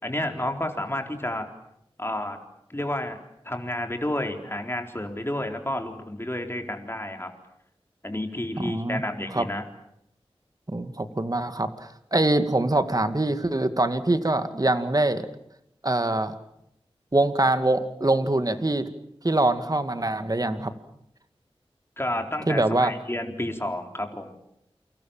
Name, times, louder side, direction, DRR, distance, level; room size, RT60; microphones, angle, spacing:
voice 1, 0.0-1.5 2.0-2.4 2.7-3.2 3.4-7.3 8.0-9.6 22.0-24.3, left 1 dB, 25° left, 4 dB, 4.0 m, -30 dB
voice 2, 8.6-9.0 9.3-9.5 10.7-15.3 15.8-16.3 17.1-18.9 19.2-20.7 22.5-22.9, right 2 dB, 35° right, 9 dB, 2.2 m, -24 dB
29.0 x 24.5 x 7.3 m, 0.76 s
wide cardioid pair, 50°, 10 cm